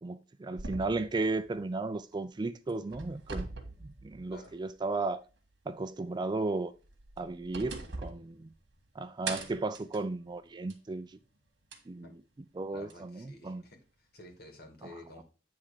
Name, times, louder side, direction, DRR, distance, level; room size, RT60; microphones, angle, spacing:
voice 1, 0.0-3.5 3.8-5.2 5.7-6.7 7.2-7.7 8.0-8.3 9.0-11.2 11.9-12.1 12.6-13.6 14.8-14.9, right 3 dB, 25° right, 0.3 m, -34 dB
sound 1, 0.6-2.3 2.7-4.7 5.1-5.2 6.8-8.9 9.3-10.9 11.7-11.8 12.9-13.0, right 3 dB, 65° right, 1.7 m, -42 dB
voice 2, 7.7-8.1 12.0-12.1 12.7-15.2, left 1 dB, 55° left, 2.0 m, -52 dB
9.4 x 3.5 x 4.9 m
head